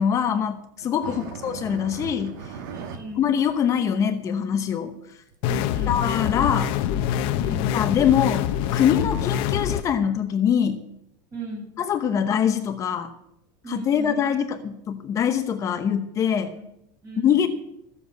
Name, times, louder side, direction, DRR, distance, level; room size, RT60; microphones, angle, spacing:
voice 1, 0.0-2.6 3.2-4.9 5.9-6.8 7.7-10.8 11.8-13.1 13.7-16.5 17.2-17.5, left 8 dB, 30° left, 7 dB, 0.9 m, -23 dB
sound 1, 0.8-3.0 3.4-3.5 3.8-3.9 4.5-4.6 5.3-5.4 6.2-6.3, right 6 dB, 75° right, 1.7 m, -37 dB
voice 2, 2.7-3.3 5.5-6.0 7.2-7.8 11.3-11.7 13.6-14.2 16.5-16.6 17.0-17.5, right 1 dB, 30° right, -1 dB, 7.2 m, -37 dB
sound 2, 5.4-9.8, left 10 dB, 60° left, 0.8 m, -25 dB
15.5 x 7.0 x 8.2 m, 0.78 s
supercardioid pair, 145°, 10 cm